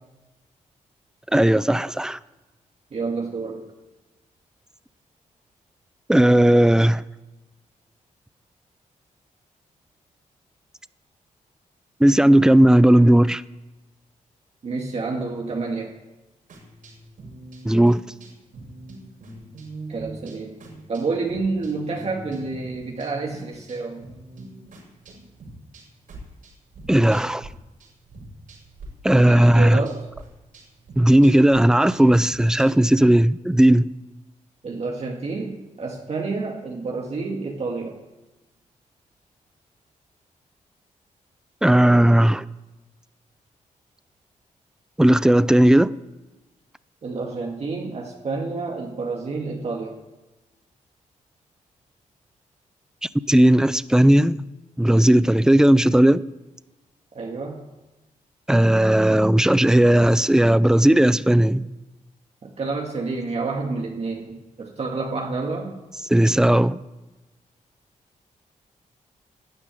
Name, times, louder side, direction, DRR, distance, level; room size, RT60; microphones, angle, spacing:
voice 1, 1.3-2.2 6.1-7.0 12.0-13.4 17.6-18.0 26.9-27.5 29.0-29.8 31.0-33.9 41.6-42.4 45.0-45.9 53.3-54.5 54.8-56.2 58.5-61.7 66.1-66.8, right 1 dB, 5° right, 0.5 m, -16 dB
voice 2, 2.9-3.6 14.6-15.9 19.9-20.5 20.9-24.0 29.1-30.1 34.6-38.0 47.0-50.0 57.1-57.6 62.4-65.7, right 3 dB, 50° right, 2.1 m, -29 dB
sound 1, 16.5-27.5 27.8-28.9 29.2-32.9, right 2 dB, 80° right, 6.1 m, -43 dB
12.5 x 11.5 x 9.2 m
cardioid pair, 95°, 14 cm